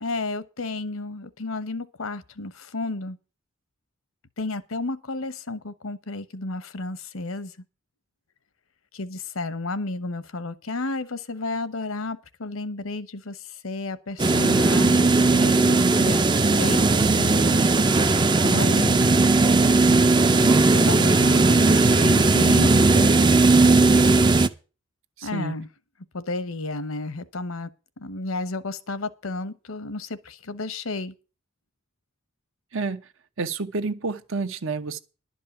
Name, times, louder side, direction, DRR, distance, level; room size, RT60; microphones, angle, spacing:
voice 1, 0.0-3.2 4.4-7.6 8.9-17.7 18.4-19.0 20.6-23.3 25.2-25.7 26.1-27.7 28.0-31.1, left 2 dB, 80° left, 1.0 m, -32 dB
sound 1, 14.2-24.5, right 3 dB, 20° right, 0.5 m, -18 dB
voice 2, 18.6-19.2 25.2-25.5 32.7-33.0 33.4-35.0, right 3 dB, 70° right, 1.0 m, -30 dB
11.5 x 5.4 x 8.8 m
head